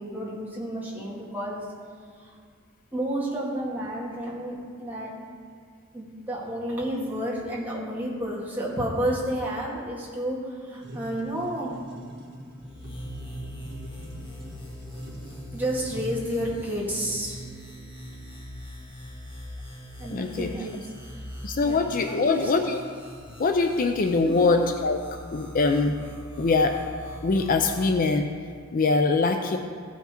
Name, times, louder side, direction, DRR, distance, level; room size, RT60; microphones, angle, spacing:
voice 1, 0.0-1.7 2.2-2.3 2.9-5.1 5.9-11.8 15.5-17.4 20.0-20.8 21.1-21.2 21.6-21.8 22.1-22.5 24.2-24.5, equal, 10° right, -7 dB, 2.1 m, -31 dB
sound 1, 10.8-16.5, right 1 dB, 60° right, 1.5 m, -42 dB
sound 2, 12.6-28.0, equal, 25° left, 1.7 m, -42 dB
voice 2, 20.0-20.7 21.4-22.8 23.4-25.0 25.3-26.0 26.4-26.8 27.2-28.3 28.7-29.6, left 3 dB, 45° left, 5 dB, 0.5 m, -23 dB
15.0 x 5.8 x 4.4 m, 2.1 s
head